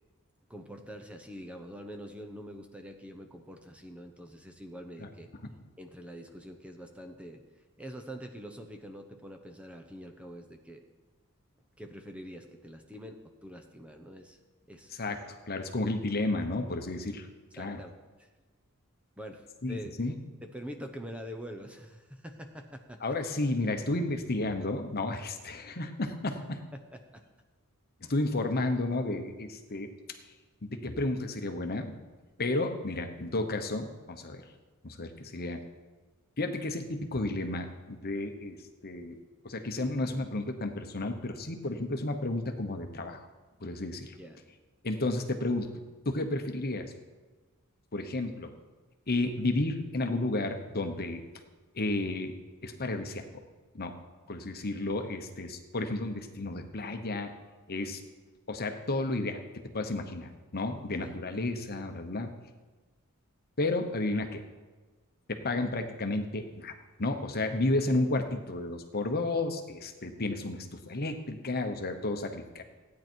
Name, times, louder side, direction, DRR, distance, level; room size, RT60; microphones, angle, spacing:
voice 1, 0.5-5.3 5.8-7.4 7.8-10.8 11.8-14.4 14.7-14.9 17.6-17.9 18.2-18.3 19.2-20.0 20.4-23.2 26.7-27.2 44.2-44.4 61.0-61.1, equal, 5° right, 4 dB, 0.9 m, -45 dB
voice 2, 15.5-17.3 17.5-17.8 19.6-20.2 23.0-26.6 28.1-29.9 30.6-31.9 32.4-34.4 34.8-35.6 36.4-39.1 39.4-43.3 43.6-44.1 44.8-45.7 46.0-46.9 47.9-48.5 49.1-51.2 51.7-52.3 52.6-53.3 53.7-53.9 54.3-57.3 57.7-58.0 58.5-59.4 59.7-62.3 63.6-64.4 65.3-66.7 67.0-72.6, left 2 dB, 45° left, 6 dB, 1.1 m, -32 dB
16.0 x 9.5 x 4.6 m, 1.3 s
head